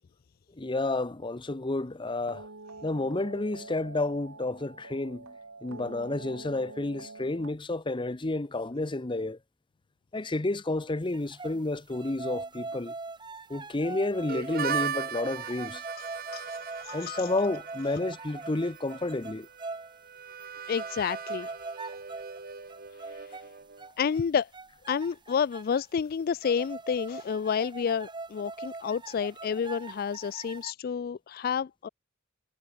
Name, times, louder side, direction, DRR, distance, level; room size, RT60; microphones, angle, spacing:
voice 1, 0.6-2.5 2.8-5.3 5.6-9.4 10.1-12.9 13.5-15.8 16.9-19.5, left 2 dB, 25° left, 0.8 m, -31 dB
sound 1, 2.3-7.5, right 3 dB, 85° right, 3.3 m, -46 dB
sound 2, 11.1-11.6 11.9-20.0 20.4-20.5 20.8-22.4 22.7-23.5 23.8-24.2 24.5-25.8 26.4-30.7, right 3 dB, 25° right, 1.5 m, -41 dB
Harmonica, 14.3-23.9, right 7 dB, 45° right, 1.7 m, -39 dB
voice 2, 16.0-17.3 20.7-21.5 24.0-24.5 24.9-31.9, left 7 dB, 45° left, 0.3 m, -30 dB
head